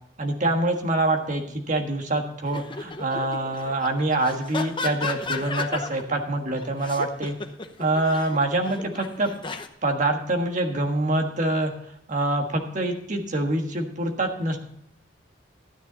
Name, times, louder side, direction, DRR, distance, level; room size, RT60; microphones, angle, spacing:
voice 1, 0.2-7.3 7.8-9.3 9.8-11.7 12.1-14.6, right 2 dB, 40° right, 3 dB, 1.5 m, -25 dB
sound 1, 2.5-6.2 6.6-9.7, left 4 dB, 25° left, 0.8 m, -34 dB
13.0 x 9.5 x 4.0 m, 0.72 s
head